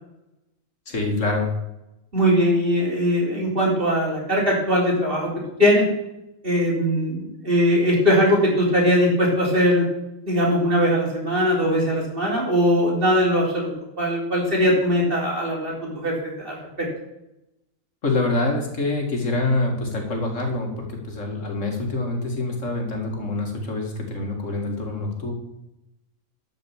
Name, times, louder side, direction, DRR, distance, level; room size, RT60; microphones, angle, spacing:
voice 1, 0.9-1.5 18.0-25.3, left 2 dB, 70° left, 2 dB, 2.6 m, -26 dB
voice 2, 2.1-5.3 5.6-5.8 6.4-9.9 10.3-13.7 14.0-16.9, equal, 45° right, -3 dB, 4.0 m, -20 dB
12.5 x 5.6 x 7.3 m, 0.90 s
omnidirectional pair, 1.3 m